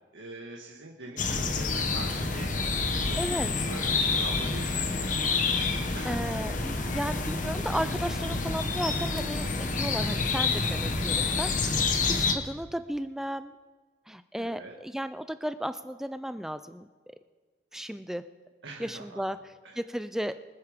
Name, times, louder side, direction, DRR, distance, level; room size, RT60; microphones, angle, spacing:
voice 1, 0.1-2.5 2.7-5.4 5.9-6.4 6.7-6.9 14.4-14.7 18.6-19.3 19.6-19.8, right 2 dB, 80° right, -1 dB, 1.6 m, -44 dB
sound 1, 1.2-12.3, left 4 dB, 45° left, 1.0 m, -28 dB
voice 2, 3.2-3.5 5.3-5.7 6.0-13.5 14.1-16.9 17.7-18.2 18.8-19.4 19.8-20.3, equal, ahead, 11 dB, 0.3 m, -34 dB
24.5 x 8.3 x 5.1 m, 1.5 s
head